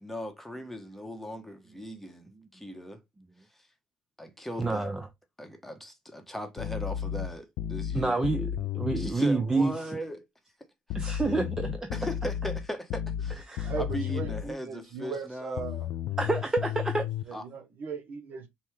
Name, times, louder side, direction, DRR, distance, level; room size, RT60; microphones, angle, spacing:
voice 1, 0.0-3.0 4.2-4.9 5.4-8.2 8.9-10.2 11.0-11.1 11.9-13.4 13.8-15.6 17.3-17.4, equal, 5° left, 0.9 m, -38 dB
voice 2, 4.6-5.1 7.9-9.7 10.9-11.9 13.5-13.7 16.2-17.1, right 3 dB, 15° right, 0.6 m, -28 dB
sound 1, 6.6-9.2 10.9-14.5 15.6-17.2, left 10 dB, 75° left, 0.4 m, -33 dB
voice 3, 13.6-15.9 17.3-18.5, right 5 dB, 55° right, 0.9 m, -38 dB
5.4 x 2.1 x 3.1 m
cardioid pair, 95°, 4 cm